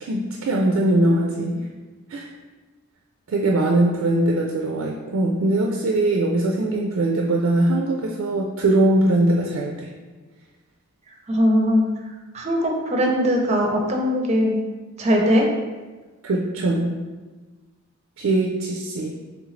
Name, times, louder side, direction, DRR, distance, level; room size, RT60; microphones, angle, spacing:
voice 1, 0.0-1.6 2.1-2.3 3.3-9.9 16.2-17.0 18.2-19.2, right 1 dB, 80° right, 0 dB, 0.4 m, -21 dB
voice 2, 11.3-11.9 12.3-14.6 15.0-15.5, equal, 30° right, 1 dB, 0.5 m, -20 dB
3.7 x 3.3 x 3.1 m, 1.3 s
head